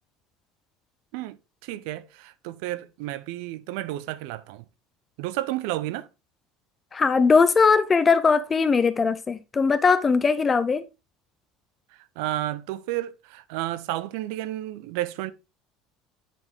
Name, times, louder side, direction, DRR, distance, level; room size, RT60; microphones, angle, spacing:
voice 1, 1.6-4.6 5.2-6.1 12.2-15.3, right 15 dB, 70° right, 0.6 m, -31 dB
voice 2, 6.9-10.8, left 5 dB, 15° left, 0.4 m, -20 dB
8.9 x 4.3 x 3.5 m
cardioid pair, 170°, 0 cm